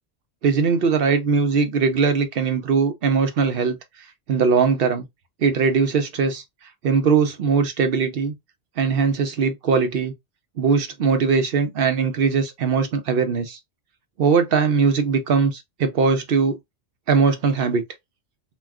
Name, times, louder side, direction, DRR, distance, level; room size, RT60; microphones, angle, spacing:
voice 1, 0.4-3.8 4.3-5.0 5.4-6.4 6.8-8.3 8.8-10.1 10.6-13.6 14.2-16.6 17.1-17.8, right 5 dB, 65° right, 0.7 m, -20 dB
2.3 x 2.2 x 3.4 m
omnidirectional pair, 1.1 m